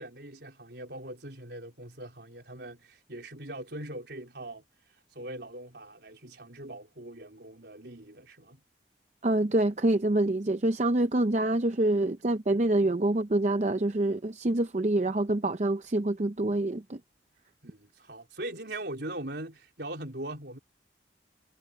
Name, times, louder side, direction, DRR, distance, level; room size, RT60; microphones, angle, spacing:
voice 1, 0.0-4.6 5.1-8.6 17.6-20.6, right 1 dB, 65° right, 4.1 m, -41 dB
voice 2, 9.2-17.0, right 1 dB, 40° right, 0.6 m, -26 dB
head